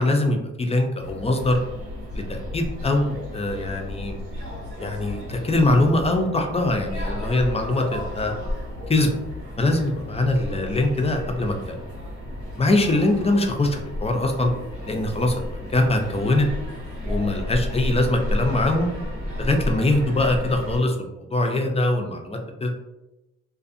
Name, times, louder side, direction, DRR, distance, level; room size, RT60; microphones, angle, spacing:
voice 1, 0.0-1.6 2.1-4.2 4.8-8.3 8.9-9.1 9.6-11.5 12.6-14.5 14.9-16.5 17.0-18.9 19.4-22.7, left 2 dB, 20° left, 3 dB, 0.4 m, -22 dB
sound 1, 1.0-20.8, left 1 dB, 85° right, 1.0 m, -33 dB
2.5 x 2.4 x 2.5 m, 0.96 s
cardioid pair, 95°, 30 cm